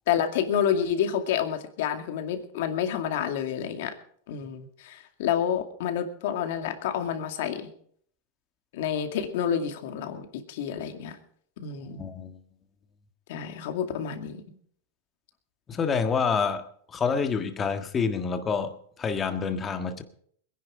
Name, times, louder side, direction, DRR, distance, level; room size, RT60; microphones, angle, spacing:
voice 1, 0.1-3.9 4.3-7.7 8.7-11.2 11.6-12.0 13.3-14.5, left 8 dB, 65° left, 2.3 m, -29 dB
voice 2, 12.0-12.4 15.7-16.6 16.9-20.0, left 5 dB, 20° left, 1.6 m, -27 dB
21.5 x 10.5 x 4.9 m
supercardioid pair, 130°, 0 cm